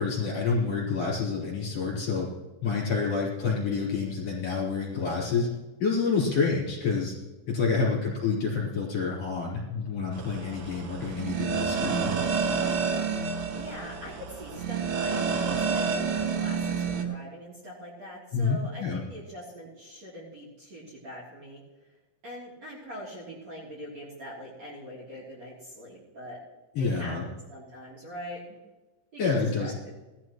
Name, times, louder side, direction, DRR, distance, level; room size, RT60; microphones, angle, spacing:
voice 1, 0.0-2.3 2.6-5.5 5.8-7.1 7.5-12.1 18.3-19.0 26.7-27.2 29.2-29.7, left 5 dB, 35° left, -6 dB, 4.9 m, -28 dB
sound 1, 10.1-17.0, right 5 dB, 75° right, 3.9 m, -29 dB
voice 2, 13.5-21.6 22.2-26.4 26.8-28.6 29.1-30.0, equal, 35° right, -7 dB, 3.8 m, -43 dB
19.0 x 13.0 x 3.1 m, 1.1 s
omnidirectional pair, 5.8 m